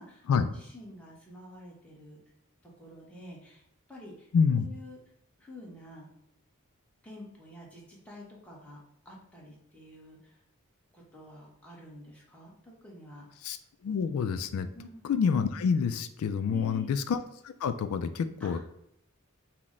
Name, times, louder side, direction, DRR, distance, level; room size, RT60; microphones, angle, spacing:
voice 1, 0.0-2.2 2.6-3.6 3.9-5.0 5.4-6.1 7.0-8.8 9.0-10.4 10.9-13.5 14.7-15.0 16.5-16.9 18.4-18.6, left 1 dB, 5° left, -4 dB, 1.0 m, -48 dB
voice 2, 4.3-4.7 13.4-13.6 13.8-14.7 15.0-18.6, left 6 dB, 80° left, 11 dB, 0.3 m, -28 dB
5.8 x 2.1 x 3.6 m, 0.78 s
head